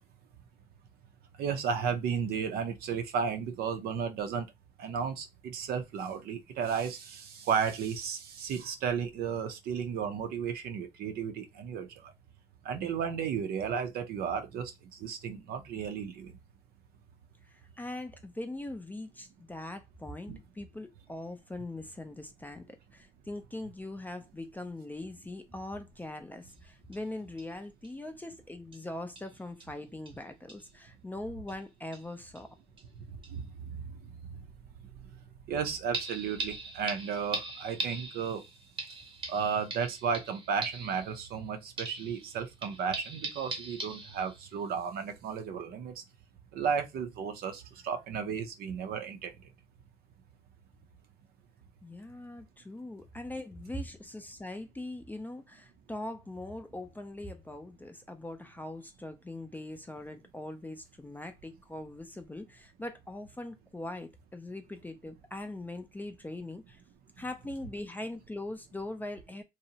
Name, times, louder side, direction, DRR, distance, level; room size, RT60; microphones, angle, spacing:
voice 1, 1.4-4.5 4.8-11.9 12.6-14.7 15.0-16.4 20.3-20.4 33.3-33.8 35.5-38.4 39.3-46.0 46.5-49.3, right 6 dB, 65° right, 0.5 m, -33 dB
voice 2, 17.5-32.5 51.8-66.8 67.2-69.4, left 2 dB, 10° left, 0.4 m, -41 dB
sound 1, 26.5-26.6 26.9-27.0 27.4-27.5 27.8-27.9 28.7-28.8 29.1-29.3 29.6-29.7 30.0-30.2 30.5-30.7 31.5-31.6 31.9-32.5 32.8-32.9 33.2-33.3 35.9-41.5 41.8-44.6 45.0-45.1, right 3 dB, 30° right, 0.7 m, -41 dB
2.7 x 2.0 x 2.7 m
cardioid pair, 110°, 17 cm